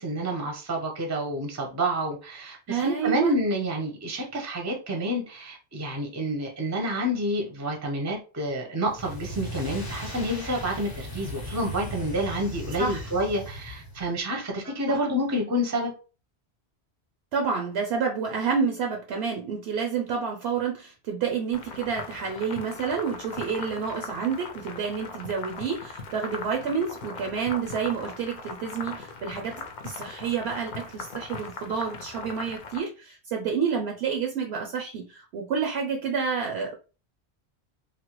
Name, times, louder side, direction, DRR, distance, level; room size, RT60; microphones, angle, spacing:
voice 1, 0.0-15.9, equal, 20° right, 0.5 m, -29 dB
voice 2, 2.7-3.3 12.8-13.1 14.6-15.0 17.3-36.7, right 6 dB, 75° right, 0.8 m, -29 dB
sound 1, 8.8-14.1, left 1 dB, 25° left, 0.6 m, -37 dB
sound 2, 21.5-32.8, left 4 dB, 60° left, 0.6 m, -39 dB
3.2 x 2.1 x 2.9 m
omnidirectional pair, 1.1 m